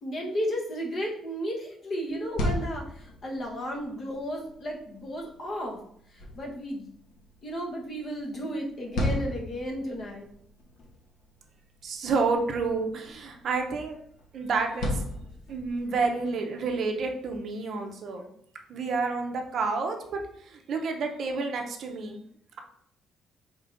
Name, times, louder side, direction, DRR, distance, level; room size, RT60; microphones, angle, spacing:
voice 1, 0.0-5.8 6.1-6.9 7.4-10.3, equal, 40° left, -1 dB, 1.0 m, -34 dB
sound 1, 2.1-16.0, left 1 dB, 70° left, 1.0 m, -37 dB
voice 2, 11.8-14.0 14.3-15.0 15.5-18.2 18.7-20.2 20.5-22.2, right 4 dB, 50° right, 4 dB, 0.6 m, -29 dB
4.8 x 3.6 x 2.5 m, 0.67 s
cardioid pair, 150°, 0 cm